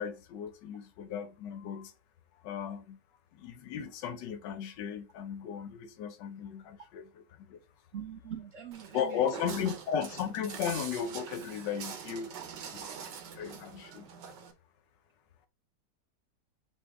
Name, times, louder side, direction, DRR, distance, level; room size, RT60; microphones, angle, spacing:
voice 1, 0.0-1.9 2.4-3.0 3.3-7.6 8.9-12.3 12.7-13.0 13.3-14.0, left 8 dB, 90° left, 1.3 m, -36 dB
voice 2, 7.9-9.2, right 9 dB, 65° right, 0.8 m, -42 dB
Walk footsteps, 8.7-14.5, right 7 dB, 90° right, 1.5 m, -44 dB
5.8 x 2.6 x 3.4 m
omnidirectional pair, 1.9 m